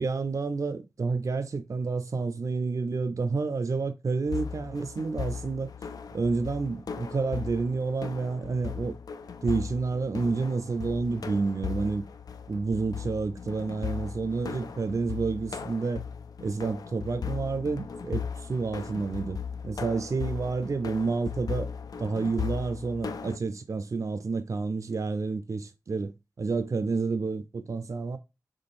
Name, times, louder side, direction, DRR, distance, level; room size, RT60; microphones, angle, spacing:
voice 1, 0.0-5.7 6.1-9.0 9.4-12.1 12.5-16.0 16.4-21.7 22.0-28.2, right 4 dB, 60° right, 0.4 m, -29 dB
sound 1, 4.3-23.4, left 6 dB, 90° left, 0.3 m, -37 dB
3.6 x 3.0 x 4.1 m
wide cardioid pair, 55°, 6 cm